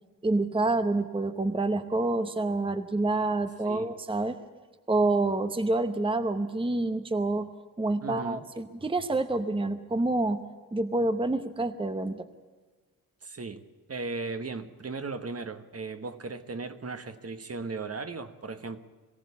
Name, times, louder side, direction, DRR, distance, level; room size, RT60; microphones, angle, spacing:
voice 1, 0.2-4.4 4.9-7.5 7.8-10.4 10.7-12.3, right 2 dB, 15° right, 10 dB, 0.9 m, -27 dB
voice 2, 8.0-8.5 13.2-13.6 13.9-18.8, right 3 dB, 45° right, 10 dB, 1.2 m, -37 dB
22.5 x 16.5 x 8.4 m, 1.4 s
wide cardioid pair, 135°, 35 cm